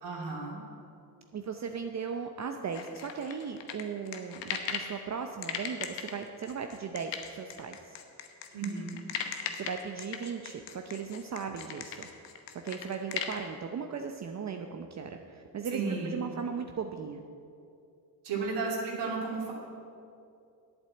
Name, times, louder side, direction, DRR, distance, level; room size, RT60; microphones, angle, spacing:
voice 1, 0.0-0.6 8.5-8.9 15.7-16.2 18.2-19.5, right 4 dB, 75° right, -2 dB, 2.8 m, -33 dB
voice 2, 1.3-8.0 9.5-12.1 12.6-17.2, right 6 dB, 40° right, 5 dB, 0.7 m, -37 dB
sound 1, 2.7-4.9 5.4-13.4, left 8 dB, 85° left, 1.1 m, -37 dB
8.8 x 7.9 x 7.8 m, 2.6 s
cardioid pair, 80°, 42 cm